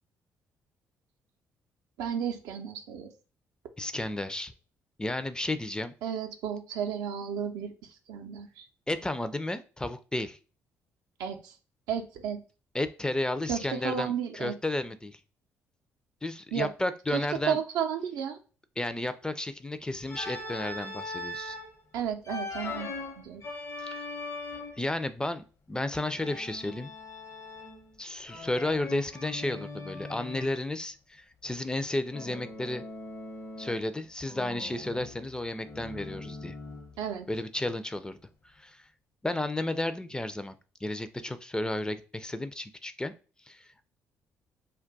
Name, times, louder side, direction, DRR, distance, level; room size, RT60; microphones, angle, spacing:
voice 1, 2.0-3.1 6.0-7.7 8.1-8.7 11.2-11.6 11.9-12.4 13.5-14.6 16.5-16.7 17.1-18.4 21.9-23.4 37.0-37.3, right 8 dB, 80° right, 6 dB, 0.4 m, -33 dB
voice 2, 3.8-4.5 5.0-5.9 8.9-10.4 12.7-15.2 16.2-17.6 18.8-21.6 23.8-24.0 24.8-26.9 28.0-32.8 33.6-36.6 37.3-38.2 38.4-38.9 39.2-43.1 43.5-43.7, left 1 dB, 10° left, 11 dB, 0.4 m, -33 dB
Organ, 20.1-21.7 22.2-24.9 26.2-27.9 28.3-30.6 32.1-33.9 34.2-37.0, left 2 dB, 55° left, 0.7 m, -40 dB
2.3 x 2.2 x 3.9 m, 0.35 s
hypercardioid pair, 55°, 6 cm